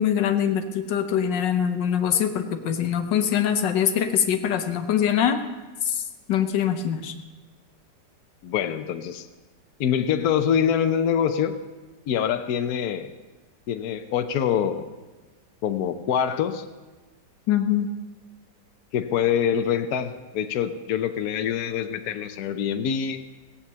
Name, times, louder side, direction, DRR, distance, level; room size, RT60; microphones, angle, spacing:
voice 1, 0.0-5.4 5.8-6.0 6.3-7.1 17.5-17.9, left 9 dB, 80° left, 7 dB, 1.6 m, -23 dB
voice 2, 8.4-9.3 9.8-11.5 12.1-13.1 13.7-14.9 15.6-16.6 18.9-23.2, left 8 dB, 65° left, 8 dB, 1.1 m, -25 dB
17.5 x 8.5 x 6.8 m, 1.2 s
omnidirectional pair, 1.9 m